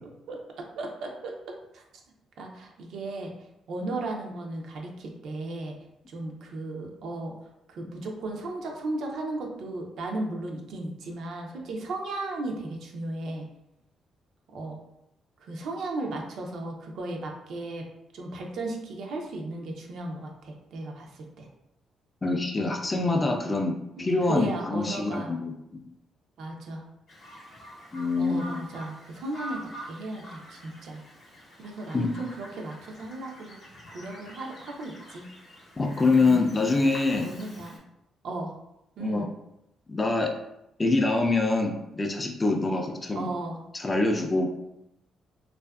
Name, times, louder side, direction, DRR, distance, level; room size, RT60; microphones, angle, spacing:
voice 1, 0.0-1.3 1.7-1.8 2.4-3.3 3.7-5.8 6.1-7.3 7.7-13.5 14.5-14.8 15.4-17.9 18.1-21.5 24.0-25.4 26.4-26.8 28.2-29.6 29.9-31.0 31.6-33.6 33.9-35.3 36.1-36.4 37.2-37.8 38.2-38.5 39.0-39.3 43.1-43.6, right 2 dB, 70° right, 1 dB, 0.4 m, -35 dB
voice 2, 22.2-25.9 27.9-28.6 31.9-32.1 35.8-37.3 39.0-39.3 39.9-40.3 40.8-43.3 43.7-44.5, left 3 dB, 25° left, 2 dB, 0.4 m, -25 dB
Bird vocalization bird call bird song, 27.1-37.8, equal, 55° left, 0.7 m, -46 dB
2.5 x 2.4 x 2.2 m, 0.84 s
cardioid pair, 90°, 0 cm